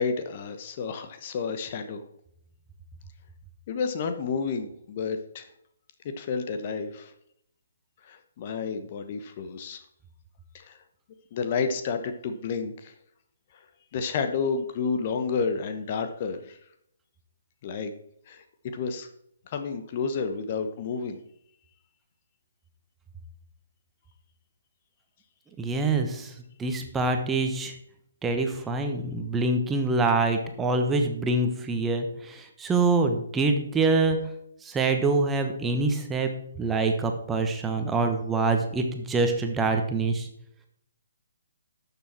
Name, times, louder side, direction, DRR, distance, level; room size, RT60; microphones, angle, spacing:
voice 1, 0.0-2.0 3.7-5.5 6.0-7.1 8.0-9.8 10.5-10.8 11.3-12.9 13.9-16.6 17.6-17.9 18.3-19.1 19.5-21.2, left 5 dB, 40° left, 8 dB, 1.0 m, -30 dB
voice 2, 25.6-26.3 26.6-27.7 28.2-34.2 34.6-36.3 36.6-40.3, right 3 dB, 10° right, 4 dB, 1.2 m, -25 dB
12.0 x 6.9 x 4.4 m, 0.71 s
figure-of-eight pair, 135°, 0 cm